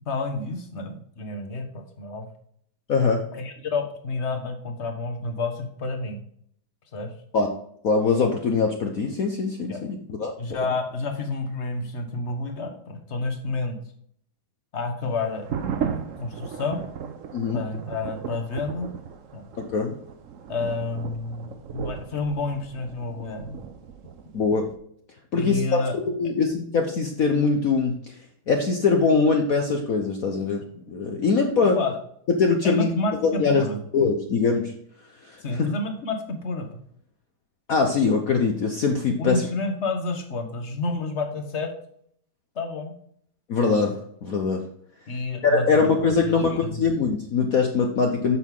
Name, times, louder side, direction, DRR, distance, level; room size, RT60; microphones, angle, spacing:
voice 1, 0.1-2.3 3.3-6.2 6.9-7.1 9.7-9.8 10.4-13.8 14.7-15.4 16.2-16.8 17.5-18.9 19.3-19.4 20.5-23.6 25.3-26.0 31.8-32.0 32.6-33.8 35.4-36.8 39.2-41.7 42.5-42.9 45.1-46.0 46.2-46.8, left 3 dB, 40° left, 5 dB, 1.4 m, -29 dB
voice 2, 2.9-3.2 7.3-7.5 7.8-10.3 17.3-17.6 19.6-19.9 24.3-24.7 25.3-25.8 26.2-27.9 28.5-31.8 32.4-32.9 33.2-33.6 33.9-34.7 35.3-35.7 37.7-39.4 43.5-44.6 45.4-48.4, left 4 dB, 55° left, 3 dB, 1.1 m, -22 dB
sound 1, 15.3-24.7, right 7 dB, 60° right, 0.8 m, -36 dB
8.4 x 6.3 x 3.7 m, 0.66 s
omnidirectional pair, 2.3 m